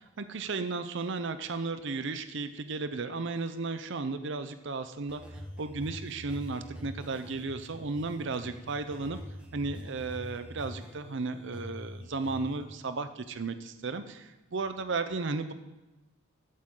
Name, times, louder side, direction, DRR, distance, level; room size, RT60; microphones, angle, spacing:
voice 1, 0.2-9.2 9.5-15.5, right 3 dB, 55° right, 10 dB, 0.6 m, -34 dB
sound 1, 5.1-12.6, equal, 5° right, 1.3 m, -45 dB
14.0 x 8.6 x 3.8 m, 1.0 s
head